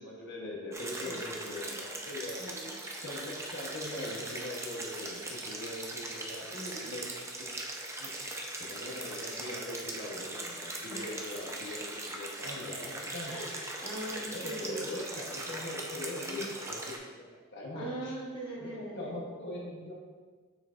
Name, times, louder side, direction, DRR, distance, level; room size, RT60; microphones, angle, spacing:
voice 1, 0.0-2.4 3.0-7.0 7.4-7.5 8.0-8.1 8.6-13.3 14.1-16.4 16.7-16.8 17.2-18.1 18.6-19.9, left 1 dB, 55° left, -3 dB, 1.0 m, -41 dB
sound 1, 0.7-17.0, right 2 dB, 15° right, 0.6 m, -40 dB
voice 2, 2.4-2.7 6.5-6.9 10.9-11.2 13.2-14.9 16.3-16.5 17.7-19.2, right 1 dB, 25° left, -5 dB, 1.3 m, -41 dB
7.0 x 5.7 x 2.5 m, 1.4 s
head